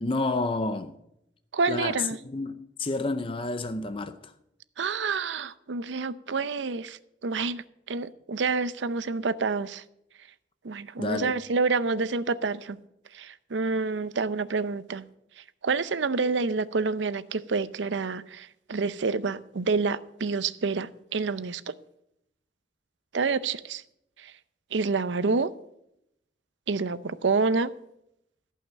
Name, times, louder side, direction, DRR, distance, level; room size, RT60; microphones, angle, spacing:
voice 1, 0.0-0.9 1.7-4.3 11.0-11.3, left 3 dB, 30° left, 0.6 m, -30 dB
voice 2, 1.5-2.2 4.8-9.8 10.6-12.8 13.1-15.0 15.6-21.7 23.1-23.8 24.2-24.3 24.7-25.5 26.7-27.7, right 4 dB, 85° right, 0.6 m, -28 dB
14.5 x 5.7 x 7.6 m
head